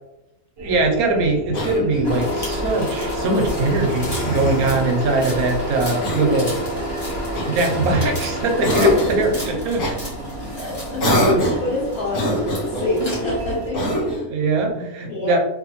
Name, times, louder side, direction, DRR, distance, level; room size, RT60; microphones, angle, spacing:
sound 1, 0.6-14.2, right 1 dB, 50° right, 0.8 m, -36 dB
voice 1, 0.6-6.5 7.4-9.8 11.1-11.4 14.2-15.4, right 3 dB, 80° right, 2 dB, 1.1 m, -21 dB
Cough, 1.5-2.3 3.6-4.8 6.0-6.5 7.3-8.2 8.6-9.3 9.8-10.0 11.0-11.7 12.1-12.9 13.7-14.3, left 1 dB, 75° left, 1.4 m, -23 dB
sound 2, 2.0-13.7, equal, 20° left, 1.0 m, -29 dB
voice 2, 10.6-11.3 11.6-13.8 15.1-15.3, left 1 dB, 45° left, -6 dB, 1.6 m, -26 dB
3.4 x 2.2 x 2.9 m, 0.90 s
omnidirectional pair, 1.6 m